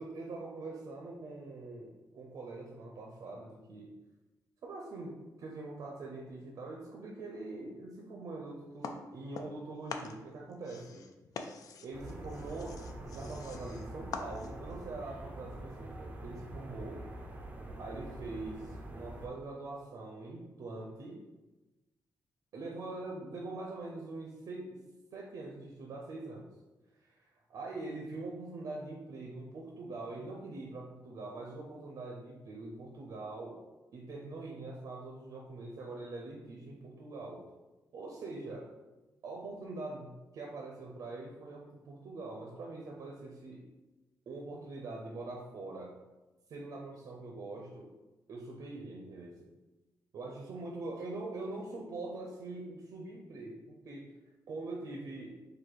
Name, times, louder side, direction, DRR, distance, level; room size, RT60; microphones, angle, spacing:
voice 1, 0.0-3.9 4.6-11.0 11.8-12.8 13.1-17.0 17.8-21.2 22.5-24.8 25.1-26.6 27.0-27.2 27.5-33.6 33.9-37.4 37.9-38.7 39.2-43.6 44.3-45.9 46.5-47.9 48.3-49.3 50.1-54.1 54.5-55.4, right 2 dB, 60° right, -1 dB, 0.6 m, -43 dB
sound 1, 8.8-9.6 9.9-14.8, left 5 dB, 60° left, 0.4 m, -44 dB
sound 2, 11.9-19.3, right 1 dB, 20° right, 0.5 m, -45 dB
4.1 x 2.6 x 4.6 m, 1.1 s
wide cardioid pair, 170°, 7 cm